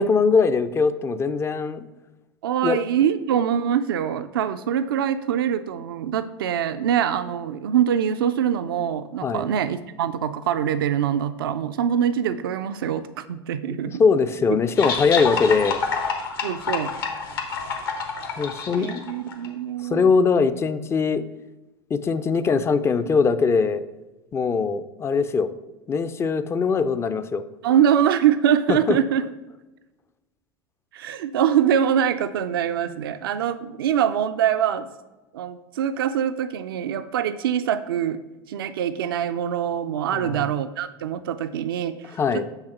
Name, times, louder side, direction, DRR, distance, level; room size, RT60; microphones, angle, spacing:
voice 1, 0.0-1.9 2.6-2.8 9.2-9.5 13.7-15.8 18.4-19.0 19.9-21.2 21.9-23.8 24.3-25.5 25.9-27.4 28.7-29.0 40.1-40.4 42.2-42.4, left 5 dB, 20° left, 12 dB, 0.4 m, -21 dB
voice 2, 2.4-14.0 16.4-16.9 18.8-20.1 27.6-29.2 30.9-34.9 35.3-38.2 38.5-42.5, right 9 dB, 65° right, 11 dB, 0.4 m, -24 dB
sound 1, 14.8-19.5, left 5 dB, 70° left, 1.3 m, -28 dB
7.9 x 3.4 x 5.7 m, 1.1 s
figure-of-eight pair, 75°, 13 cm